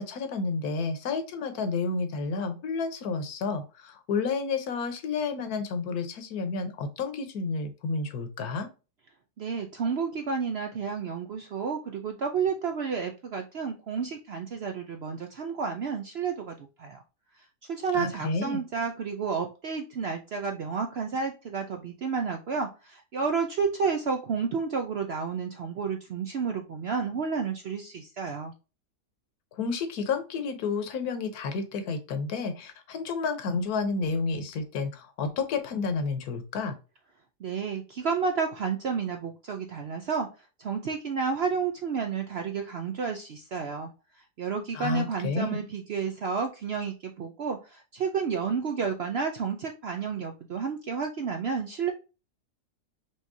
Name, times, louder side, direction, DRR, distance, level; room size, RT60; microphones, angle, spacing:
voice 1, 0.0-8.7 17.9-18.6 29.6-36.8 44.7-45.6, left 4 dB, 70° left, 9 dB, 1.3 m, -30 dB
voice 2, 9.4-17.0 17.4-28.5 37.4-40.3 40.6-43.9 44.2-51.9, right 5 dB, 70° right, 4 dB, 0.6 m, -31 dB
5.4 x 3.2 x 2.6 m, 0.31 s
omnidirectional pair, 1.7 m